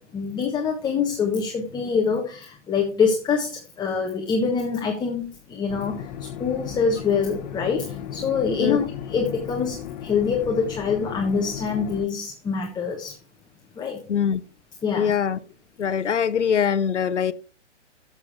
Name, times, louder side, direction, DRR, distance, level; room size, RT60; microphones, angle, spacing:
voice 1, 0.1-13.2 13.8-14.0 14.8-15.1, left 5 dB, 10° left, 1.3 m, -25 dB
sound 1, 5.7-12.0, left 9 dB, 35° left, 1.2 m, -35 dB
voice 2, 14.1-14.4 14.9-15.4 15.8-17.3, left 7 dB, 75° left, 0.8 m, -22 dB
14.0 x 7.1 x 3.6 m
figure-of-eight pair, 125°, 36 cm